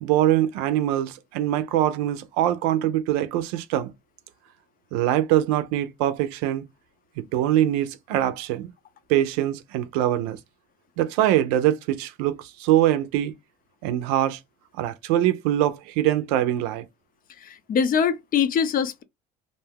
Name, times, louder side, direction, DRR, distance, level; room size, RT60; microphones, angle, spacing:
voice 1, 0.0-3.9 4.9-6.7 7.2-8.7 9.1-10.4 11.0-13.3 13.8-14.4 14.8-16.9, right 12 dB, 75° right, 0.5 m, -23 dB
voice 2, 17.4-19.0, left 7 dB, 45° left, 0.6 m, -23 dB
2.6 x 2.2 x 3.3 m
hypercardioid pair, 70°, 20 cm